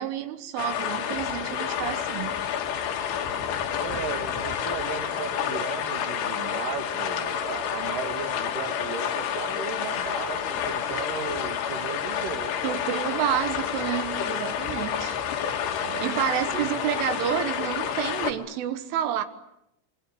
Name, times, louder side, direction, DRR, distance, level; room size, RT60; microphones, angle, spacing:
voice 1, 0.0-2.4 12.6-15.2 16.0-19.2, right 11 dB, 80° right, 3.8 m, -29 dB
sound 1, 0.6-18.3, left 8 dB, 65° left, 3.7 m, -29 dB
voice 2, 3.8-13.3 14.8-15.0 15.8-16.3 16.5-16.7, right 8 dB, 55° right, 3.0 m, -36 dB
26.0 x 25.0 x 9.1 m
omnidirectional pair, 5.6 m